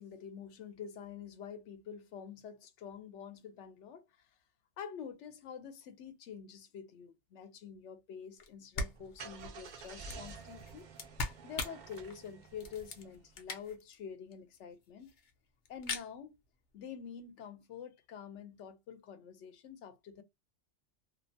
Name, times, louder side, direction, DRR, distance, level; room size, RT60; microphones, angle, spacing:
voice 1, 0.0-4.3 4.8-10.9 11.4-15.1 15.7-16.4 16.7-20.2, left 7 dB, 75° left, 0.9 m, -47 dB
sound 1, 8.4-8.5 8.7-13.9 14.3-14.4 14.6-14.7 14.8-15.3 15.7-16.1, left 3 dB, 50° left, 0.6 m, -41 dB
Car / Engine starting, 8.8-13.5, right 5 dB, 60° right, 0.5 m, -51 dB
2.7 x 2.1 x 2.6 m
omnidirectional pair, 1.3 m